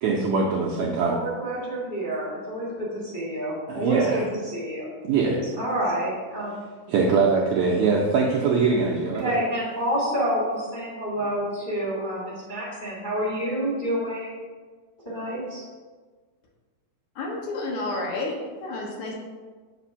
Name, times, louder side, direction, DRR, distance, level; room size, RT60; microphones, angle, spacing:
voice 1, 0.0-1.2 3.7-4.2 5.0-5.5 6.9-9.3, right 4 dB, 85° right, -3 dB, 1.6 m, -22 dB
voice 2, 1.0-4.2 4.5-4.9 5.6-6.5 9.2-14.3 15.0-15.6, right 1 dB, 25° left, -8 dB, 0.5 m, -28 dB
voice 3, 17.2-19.1, left 2 dB, 70° left, -1 dB, 2.1 m, -30 dB
7.3 x 2.5 x 5.5 m, 1.4 s
omnidirectional pair, 3.8 m